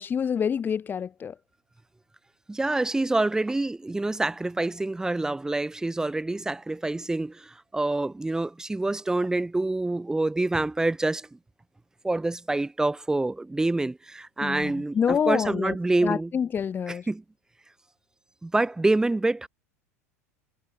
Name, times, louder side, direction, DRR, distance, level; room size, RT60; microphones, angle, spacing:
voice 1, 0.0-1.3 14.4-15.7 16.0-17.1, left 7 dB, 25° left, 1.5 m, -27 dB
voice 2, 2.5-11.4 12.0-16.3 16.9-17.2 18.4-19.5, right 2 dB, 5° right, 1.1 m, -26 dB
figure-of-eight pair, 80°, 8 cm